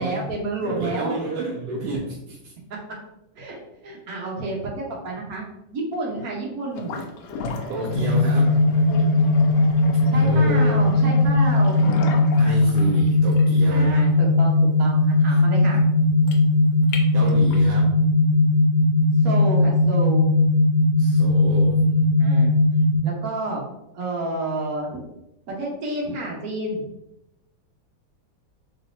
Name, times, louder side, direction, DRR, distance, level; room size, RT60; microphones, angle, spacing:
voice 1, 0.0-1.1 3.4-5.4 5.7-6.9 10.1-11.8 13.7-15.8 19.2-20.2 22.2-22.6 23.0-23.6 23.9-25.0 25.6-26.9, right 2 dB, 55° right, -2 dB, 1.4 m, -29 dB
voice 2, 0.6-2.5 7.7-8.5 10.1-10.8 12.4-14.0 15.3-15.4 17.1-17.9 21.0-22.1, right 2 dB, 70° right, -1 dB, 1.0 m, -30 dB
sound 1, 6.7-17.7, left 4 dB, 85° left, 1.4 m, -35 dB
sound 2, 7.9-23.0, left 2 dB, 60° left, 1.4 m, -18 dB
4.0 x 3.8 x 2.6 m, 0.87 s
omnidirectional pair, 2.1 m